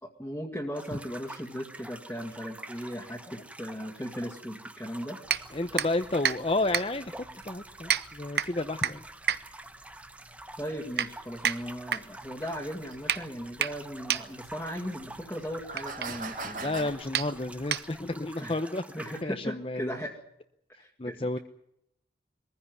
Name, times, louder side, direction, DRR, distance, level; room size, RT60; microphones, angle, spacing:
voice 1, 0.0-5.2 10.6-16.9 18.4-18.6 18.9-20.1 20.8-21.4, equal, 10° left, -1 dB, 2.1 m, -37 dB
sound 1, 0.7-19.2, right 1 dB, 10° right, 0.9 m, -47 dB
sound 2, 5.2-18.3, right 8 dB, 60° right, 0.9 m, -33 dB
voice 2, 5.5-7.2 7.4-9.0 16.6-18.8 19.2-20.0 20.7-21.4, left 2 dB, 30° left, 8 dB, 0.8 m, -31 dB
sound 3, 11.2-11.3 11.8-11.9 12.9-13.0 14.2-14.3 14.8-14.9 15.5-16.9, right 3 dB, 45° right, 2.3 m, -38 dB
22.0 x 15.5 x 9.5 m, 0.78 s
head